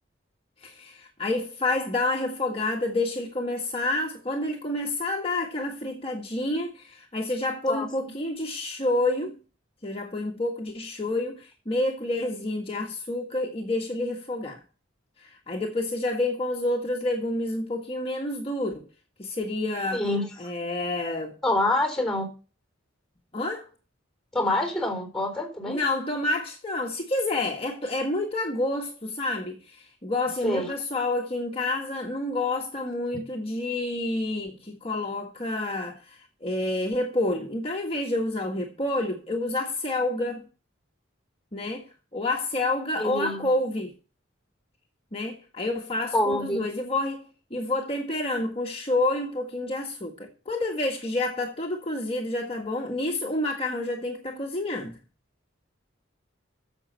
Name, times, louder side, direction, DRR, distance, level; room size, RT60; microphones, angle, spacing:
voice 1, 0.6-9.4 9.8-14.6 15.2-18.9 19.2-20.0 20.4-21.4 23.3-23.6 25.7-40.5 41.5-43.9 45.1-55.0, left 2 dB, 30° left, 1.6 m, -29 dB
voice 2, 7.6-8.1 19.9-20.3 21.4-22.3 24.3-25.8 30.4-30.7 43.0-43.5 46.1-46.6, left 1 dB, ahead, 4.0 m, -26 dB
9.7 x 7.4 x 8.1 m
head